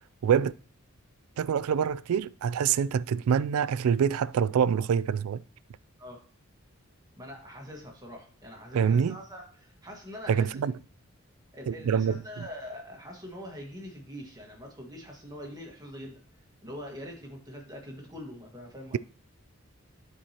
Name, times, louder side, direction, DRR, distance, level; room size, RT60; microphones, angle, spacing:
voice 1, 0.2-0.5 1.4-5.4 8.7-9.2 10.3-10.7 11.7-12.5, right 7 dB, 80° right, 0.3 m, -25 dB
voice 2, 7.2-10.7 11.5-16.2 16.6-19.0, equal, 15° right, 1.6 m, -43 dB
11.0 x 4.6 x 2.9 m
head